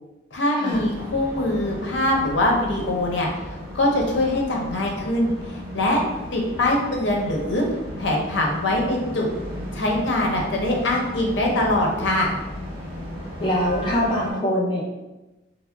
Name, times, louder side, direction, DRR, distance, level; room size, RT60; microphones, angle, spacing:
voice 1, 0.3-3.3 3.7-6.0 6.3-7.7 8.0-9.3 9.7-12.3, left 1 dB, 75° left, -1 dB, 0.6 m, -23 dB
sound 1, 0.7-14.3, equal, 45° right, 0.7 m, -35 dB
voice 2, 13.4-14.8, equal, 25° left, -4 dB, 0.4 m, -23 dB
3.8 x 2.0 x 2.2 m, 1.1 s
head